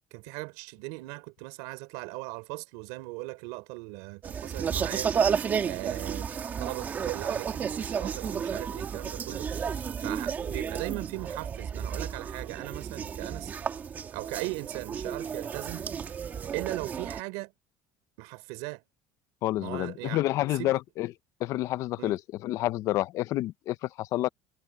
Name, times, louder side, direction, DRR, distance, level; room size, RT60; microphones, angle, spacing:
voice 1, 0.1-5.2 5.6-6.3 6.6-9.5 10.0-13.5 14.1-15.9 16.5-17.5 18.2-18.8 19.6-20.2 20.5-20.8 22.0-22.2, right 25 dB, 80° right, 3.7 m, -38 dB
sound 1, 4.2-17.2, right 7 dB, 25° right, 1.9 m, -32 dB
voice 2, 19.4-21.1 21.4-24.3, left 15 dB, 45° left, 0.5 m, -29 dB
cardioid pair, 170°, 7 cm